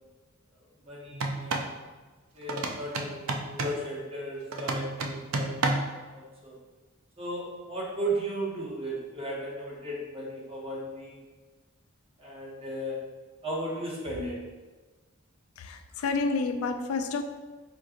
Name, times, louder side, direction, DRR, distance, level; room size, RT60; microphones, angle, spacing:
voice 1, 0.8-1.7 2.3-5.7 6.1-6.6 7.2-11.2 12.2-13.1 13.4-14.5, right 1 dB, 25° right, -5 dB, 1.0 m, -35 dB
sound 1, 1.1-1.7 2.5-3.8 4.5-6.0, right 2 dB, 75° right, 0.5 m, -30 dB
voice 2, 15.6-17.2, left 4 dB, 80° left, 7 dB, 0.3 m, -29 dB
4.5 x 3.8 x 2.4 m, 1.3 s
head